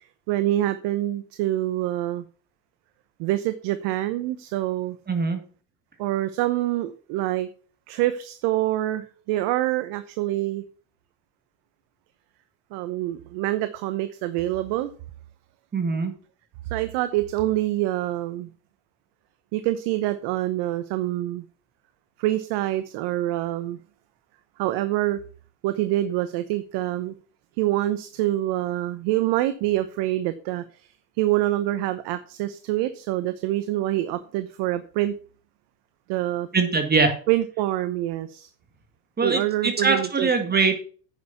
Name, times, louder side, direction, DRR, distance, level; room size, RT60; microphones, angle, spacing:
voice 1, 0.3-2.2 3.2-5.0 6.0-7.5 7.9-10.6 12.7-14.9 16.7-18.5 19.5-21.4 22.2-23.8 24.6-25.2 25.6-27.1 27.6-30.9 31.2-35.1 36.1-36.5 37.3-38.5 39.2-40.3, right 15 dB, 60° right, 12 dB, 1.0 m, -26 dB
voice 2, 5.1-5.4 15.7-16.1 36.5-37.2 39.2-40.8, right 4 dB, 20° right, 6 dB, 1.8 m, -22 dB
9.4 x 6.4 x 5.8 m, 0.41 s
hypercardioid pair, 100°, 46 cm